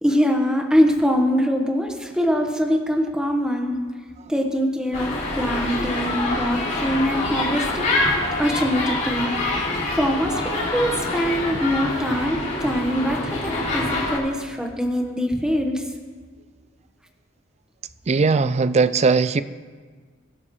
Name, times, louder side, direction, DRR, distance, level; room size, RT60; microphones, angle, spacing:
voice 1, 0.0-3.8 4.3-7.9 8.4-9.7 9.9-15.8, equal, 5° right, 2 dB, 1.3 m, -23 dB
sound 1, 4.9-14.2, left 2 dB, 40° left, 4.8 m, -25 dB
voice 2, 18.1-19.4, right 4 dB, 35° right, 14 dB, 0.4 m, -19 dB
23.5 x 12.0 x 3.2 m, 1.5 s
head